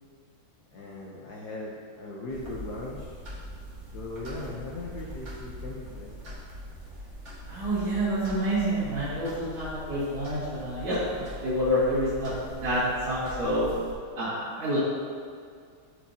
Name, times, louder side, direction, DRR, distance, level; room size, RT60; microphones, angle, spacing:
voice 1, 0.7-1.7 2.0-3.2 3.9-6.1, left 2 dB, 60° left, -4 dB, 1.2 m, -38 dB
sound 1, 2.3-13.9, equal, 35° right, 2.1 m, -42 dB
voice 2, 7.5-12.8 13.1-13.7 14.2-14.8, equal, 85° right, -14 dB, 3.2 m, -28 dB
14.5 x 4.8 x 2.8 m, 2.2 s
omnidirectional pair, 2.3 m